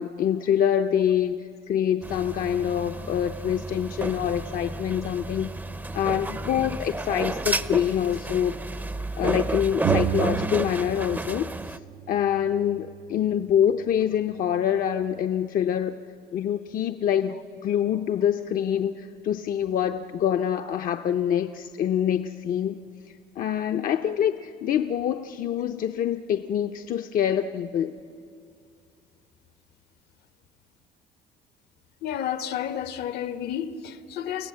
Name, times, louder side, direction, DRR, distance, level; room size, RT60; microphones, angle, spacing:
voice 1, 0.0-5.5 5.9-8.5 9.2-11.8 12.1-15.9 16.3-17.4 17.6-22.8 23.4-27.9, left 9 dB, 55° left, 0.7 m, -25 dB
sound 1, 2.0-11.8, right 2 dB, 10° right, 0.6 m, -31 dB
sound 2, 9.8-11.4 11.6-13.4, right 15 dB, 60° right, 0.5 m, -32 dB
voice 2, 32.0-34.5, left 9 dB, 70° left, 1.0 m, -31 dB
29.5 x 17.0 x 7.7 m
cardioid pair, 110°, 17 cm